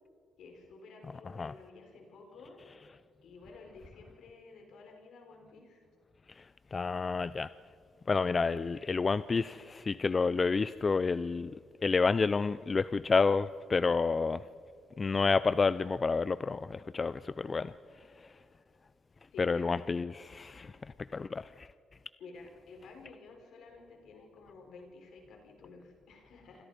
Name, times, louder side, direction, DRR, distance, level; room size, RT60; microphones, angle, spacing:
voice 1, 0.4-2.6 3.2-5.8 17.4-17.6 19.3-19.7 22.2-26.7, left 3 dB, 75° left, 2 dB, 5.3 m, -52 dB
voice 2, 6.3-7.5 8.1-11.5 11.8-14.4 15.0-17.7 18.2-18.3 19.4-21.7, left 4 dB, 30° left, 15 dB, 0.5 m, -30 dB
28.0 x 25.5 x 5.2 m, 2.3 s
cardioid pair, 90°, 0 cm